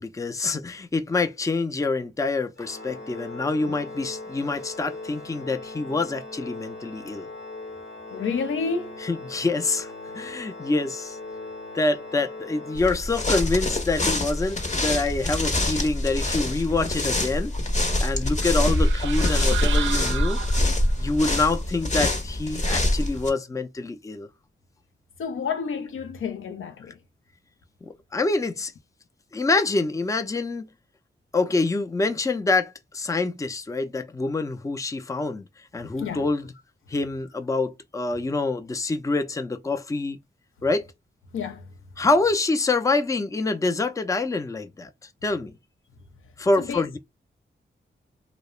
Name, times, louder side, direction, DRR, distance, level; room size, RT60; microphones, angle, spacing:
voice 1, 0.0-7.3 9.0-11.2 11.7-17.5 18.0-20.4 21.0-24.3 27.8-28.7 29.3-30.7 31.3-35.5 35.7-36.5 36.9-40.2 40.6-40.9 42.0-44.9 45.2-45.5 46.4-47.0, left 3 dB, 15° left, 0.4 m, -26 dB
Organ, 2.6-13.5, left 2 dB, 65° left, 1.0 m, -39 dB
voice 2, 8.1-9.0 25.2-27.0 35.8-36.3 41.3-41.7 46.6-47.0, left 5 dB, 80° left, 0.5 m, -30 dB
sound 1, 12.8-23.3, left 1 dB, 35° left, 0.8 m, -25 dB
sound 2, 18.4-21.1, right 10 dB, 70° right, 0.4 m, -34 dB
2.3 x 2.0 x 3.0 m
cardioid pair, 50°, 21 cm